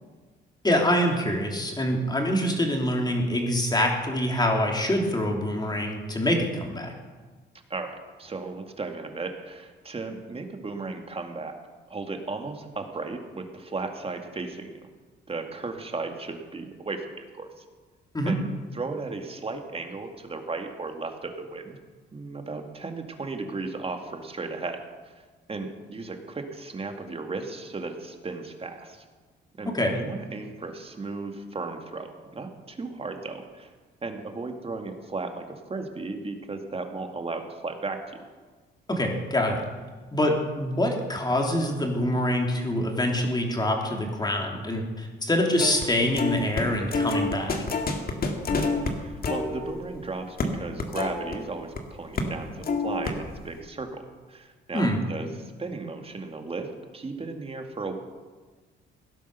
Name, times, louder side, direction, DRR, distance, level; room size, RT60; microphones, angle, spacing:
voice 1, 0.6-6.9 18.1-18.4 29.7-30.0 38.9-39.6 40.1-47.5 54.7-55.0, left 1 dB, 20° left, 1 dB, 3.3 m, -25 dB
voice 2, 7.7-11.6 11.9-14.7 15.3-17.6 18.3-18.4 18.7-21.8 22.1-24.8 25.5-29.0 29.6-33.7 34.0-38.2 48.5-54.0 54.3-58.0, right 3 dB, 30° right, 5 dB, 2.2 m, -35 dB
sound 1, 45.6-45.9 46.2-51.8 52.1-52.4 52.6-53.5, left 3 dB, 50° left, 2.2 m, -28 dB
17.5 x 10.5 x 6.8 m, 1.4 s
cardioid pair, 90°, 20 cm